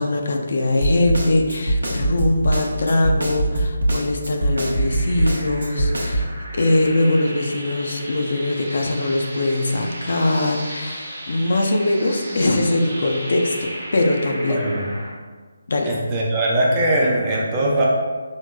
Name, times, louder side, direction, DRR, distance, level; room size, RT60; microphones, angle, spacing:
voice 1, 0.0-13.6 13.9-14.7 15.7-15.9, left 2 dB, 60° left, 2 dB, 0.4 m, -21 dB
Snare drum, 0.8-6.3, right 1 dB, 80° right, 0.6 m, -21 dB
sound 1, 4.3-15.1, right 1 dB, 60° right, 1.0 m, -35 dB
voice 2, 14.5-14.9 15.8-17.8, right 1 dB, 20° right, -3 dB, 0.5 m, -20 dB
4.6 x 2.0 x 2.2 m, 1.4 s
figure-of-eight pair, 160°, 0 cm